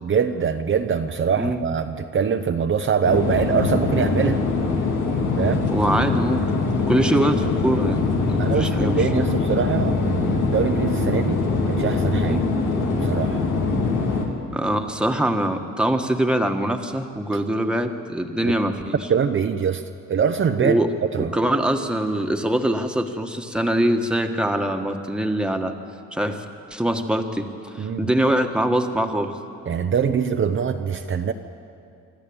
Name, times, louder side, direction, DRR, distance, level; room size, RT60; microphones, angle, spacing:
voice 1, 0.0-4.4 5.4-5.6 8.4-12.4 13.0-13.4 18.4-18.5 19.1-19.8 20.1-20.8 21.1-21.3 27.8-28.1 29.7-31.3, right 7 dB, 40° right, 6 dB, 0.9 m, -23 dB
sound 1, 3.0-14.3, left 3 dB, 85° left, 2.8 m, -23 dB
voice 2, 5.7-6.4 6.9-9.2 12.3-12.4 14.5-19.0 20.6-20.9 21.2-25.7 26.1-26.4 26.7-29.3, right 1 dB, 5° right, 4 dB, 1.6 m, -23 dB
25.0 x 13.0 x 8.7 m, 2.5 s
cardioid pair, 90°, 30 cm